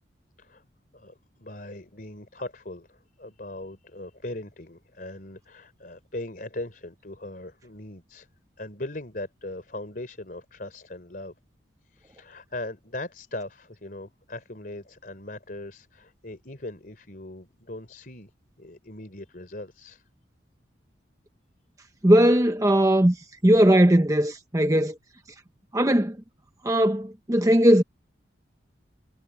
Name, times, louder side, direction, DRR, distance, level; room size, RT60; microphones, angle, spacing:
voice 1, 0.9-8.3 8.6-11.3 11.8-18.3 18.6-20.0, left 2 dB, 50° left, 3.7 m, -39 dB
voice 2, 22.0-23.2 23.4-25.0 25.7-26.2 26.6-27.8, right 1 dB, 15° right, 0.9 m, -19 dB
head